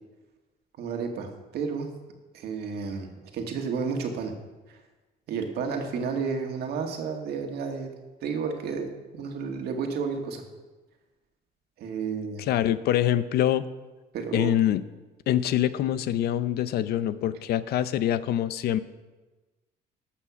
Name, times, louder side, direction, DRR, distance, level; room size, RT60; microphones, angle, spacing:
voice 1, 0.8-1.9 2.3-4.3 4.7-4.8 5.3-7.9 8.2-10.4 11.8-12.4 14.1-14.5, right 5 dB, 70° right, 3 dB, 1.8 m, -31 dB
voice 2, 12.4-13.7 14.3-14.8 15.3-18.8, left 11 dB, 70° left, 14 dB, 0.6 m, -25 dB
14.0 x 5.9 x 6.1 m, 1.2 s
cardioid pair, 110°, 17 cm